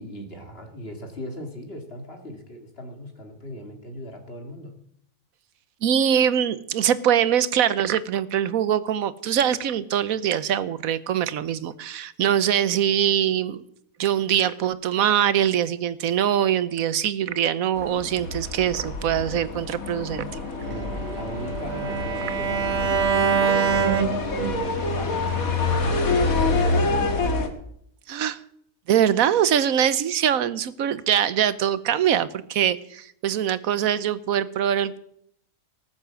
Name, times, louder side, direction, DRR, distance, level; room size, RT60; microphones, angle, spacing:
voice 1, 0.0-4.8 20.7-27.2, equal, 45° left, 4 dB, 2.5 m, -39 dB
voice 2, 5.8-13.6 14.0-20.3 28.1-28.4 28.9-35.0, right 9 dB, 80° right, 16 dB, 1.3 m, -23 dB
sound 1, 17.8-27.5, left 3 dB, 80° left, 2.2 m, -27 dB
Bowed string instrument, 20.6-24.8, right 7 dB, 55° right, 1.3 m, -25 dB
18.5 x 8.2 x 7.6 m, 0.70 s
omnidirectional pair, 1.5 m